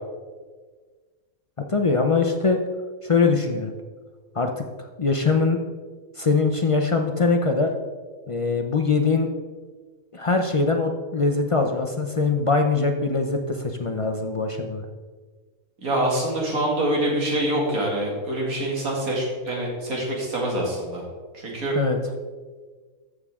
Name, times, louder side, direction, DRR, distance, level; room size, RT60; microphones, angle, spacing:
voice 1, 1.7-2.6 3.0-3.7 4.4-4.5 5.0-5.6 6.2-7.7 8.3-9.3 10.1-14.8 21.7-22.0, left 4 dB, 55° left, 4 dB, 0.3 m, -22 dB
voice 2, 15.8-21.0 21.3-21.8, right 1 dB, 65° right, -2 dB, 2.8 m, -25 dB
14.5 x 6.5 x 3.7 m, 1.4 s
omnidirectional pair, 1.6 m